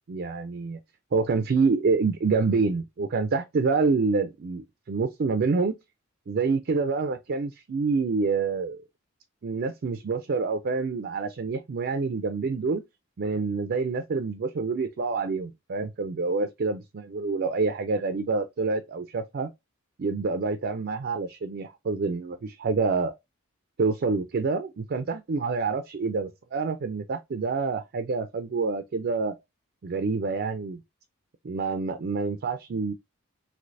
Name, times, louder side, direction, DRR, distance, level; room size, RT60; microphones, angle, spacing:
voice 1, 0.1-0.8 1.1-5.7 6.3-8.8 9.4-12.8 13.2-19.5 20.0-23.1 23.8-29.4 29.8-30.8 31.4-32.9, right 4 dB, 50° right, 0.4 m, -27 dB
3.2 x 2.9 x 2.5 m
head